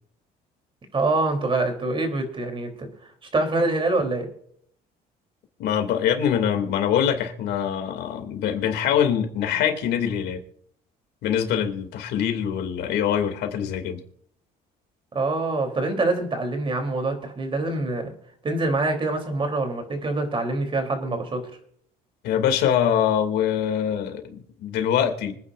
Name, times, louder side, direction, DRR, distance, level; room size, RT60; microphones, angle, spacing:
voice 1, 0.9-2.7 3.3-4.3 15.1-18.1 18.4-21.4, right 2 dB, 30° right, 5 dB, 3.5 m, -25 dB
voice 2, 5.6-10.4 11.2-14.0 22.2-25.4, left 9 dB, 80° left, 5 dB, 2.6 m, -24 dB
25.0 x 9.7 x 2.6 m, 0.63 s
cardioid pair, 110°, 17 cm